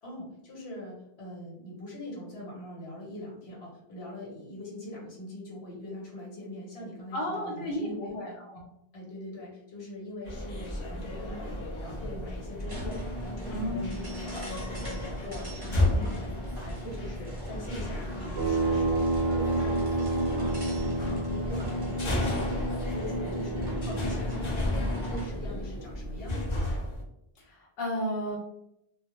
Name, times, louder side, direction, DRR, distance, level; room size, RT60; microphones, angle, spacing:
voice 1, 0.0-8.4 8.9-26.7, left 1 dB, 85° left, -3 dB, 1.1 m, -42 dB
voice 2, 7.1-8.6 13.5-13.9 27.4-28.4, left 1 dB, 70° left, -1 dB, 0.7 m, -33 dB
sound 1, 10.2-27.0, left 1 dB, 50° left, 0.4 m, -34 dB
sound 2, 12.6-25.4, equal, 25° right, 0.7 m, -38 dB
sound 3, 18.4-24.1, right 2 dB, 85° right, 0.8 m, -30 dB
2.1 x 2.0 x 2.9 m, 0.82 s
omnidirectional pair, 1.0 m